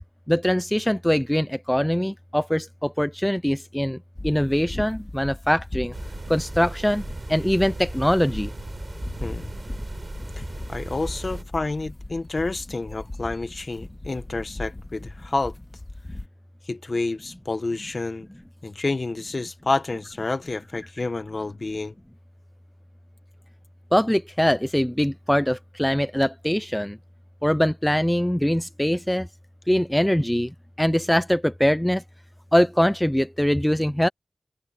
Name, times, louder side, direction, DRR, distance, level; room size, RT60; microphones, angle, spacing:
voice 1, 0.3-5.9 6.3-7.0 7.3-8.5 23.9-27.0 27.4-29.3 29.7-32.0 32.5-34.1, equal, 5° left, 0.7 m, -22 dB
sound 1, 4.2-16.3, left 2 dB, 30° left, 2.3 m, -38 dB
sound 2, 5.9-11.4, right 2 dB, 40° right, 4.2 m, -37 dB
voice 2, 9.2-9.5 10.4-10.5 10.7-15.5 16.7-18.3 18.6-21.9, left 3 dB, 45° left, 1.4 m, -29 dB
wide cardioid pair, 85°, 0 cm